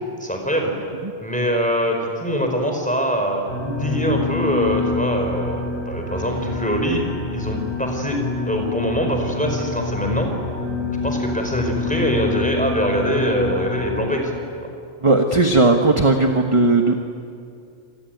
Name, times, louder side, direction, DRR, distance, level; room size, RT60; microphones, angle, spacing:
voice 1, 0.2-0.7 1.2-7.0 7.3-10.3 11.0-14.3, equal, 5° left, 2 dB, 5.0 m, -23 dB
sound 1, 3.5-14.1, left 3 dB, 45° left, 8.0 m, -27 dB
voice 2, 15.0-16.9, right 2 dB, 25° right, 4 dB, 1.3 m, -16 dB
27.5 x 20.0 x 9.4 m, 2.4 s
omnidirectional pair, 1.2 m